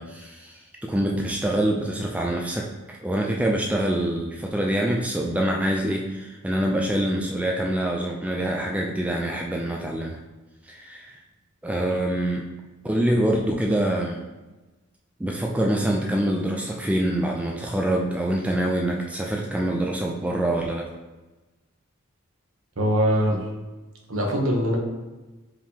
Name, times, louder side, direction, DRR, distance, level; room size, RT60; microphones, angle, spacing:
voice 1, 0.0-10.2 10.6-11.2 11.6-12.4 12.8-14.2 15.2-20.9, right 1 dB, 5° right, -1 dB, 0.3 m, -25 dB
voice 2, 22.8-23.4 24.1-24.8, equal, 75° right, 0 dB, 0.9 m, -22 dB
4.7 x 3.6 x 2.8 m, 1.2 s
head